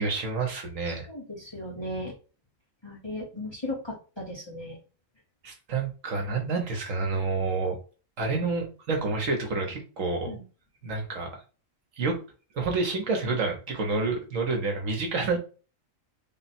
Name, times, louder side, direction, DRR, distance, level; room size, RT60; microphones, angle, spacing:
voice 1, 0.0-1.0 5.4-7.8 8.2-10.4 10.8-11.3 12.0-12.2 12.5-15.4, right 3 dB, 70° right, 2 dB, 1.3 m, -28 dB
voice 2, 0.9-2.1 2.8-4.8 10.3-10.4, left 1 dB, 20° left, -3 dB, 1.0 m, -36 dB
3.8 x 2.3 x 4.2 m, 0.35 s
omnidirectional pair, 1.4 m